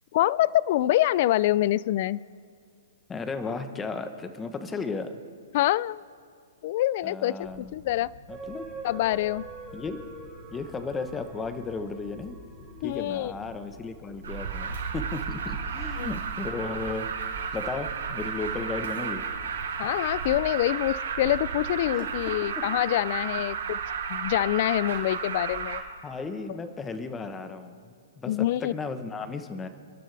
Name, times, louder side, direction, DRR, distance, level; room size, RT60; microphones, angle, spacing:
voice 1, 0.1-2.2 5.5-6.0 6.6-8.1 8.8-9.4 12.8-13.3 16.0-16.1 19.8-23.8 24.1-25.8 28.3-28.7, left 14 dB, 45° left, 21 dB, 0.4 m, -25 dB
voice 2, 3.1-5.2 7.0-7.7 8.3-8.7 9.7-10.0 10.5-12.4 12.8-17.1 17.5-19.2 21.9-22.1 26.0-29.7, left 4 dB, 10° left, 9 dB, 1.0 m, -35 dB
sound 1, 7.4-20.4, left 3 dB, 65° left, 3.4 m, -51 dB
sound 2, 8.3-14.0 14.5-14.6, right 3 dB, 5° right, 2.6 m, -44 dB
Alarm, 14.2-25.8, right 6 dB, 80° right, 4.7 m, -33 dB
29.5 x 12.0 x 3.4 m, 2.3 s
hypercardioid pair, 160°, 0 cm